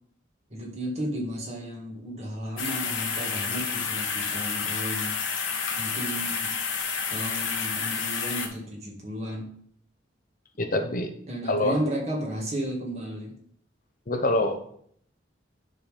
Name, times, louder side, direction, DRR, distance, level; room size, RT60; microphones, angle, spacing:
voice 1, 0.5-5.2 5.8-6.6 7.1-9.5 11.3-13.4, right 1 dB, 35° right, -2 dB, 2.0 m, -33 dB
sound 1, 2.6-8.5, left 6 dB, 90° left, 1.3 m, -30 dB
voice 2, 10.6-11.1 11.5-11.8 14.1-14.8, left 1 dB, 45° left, 6 dB, 0.8 m, -25 dB
9.8 x 3.9 x 5.2 m, 0.64 s
head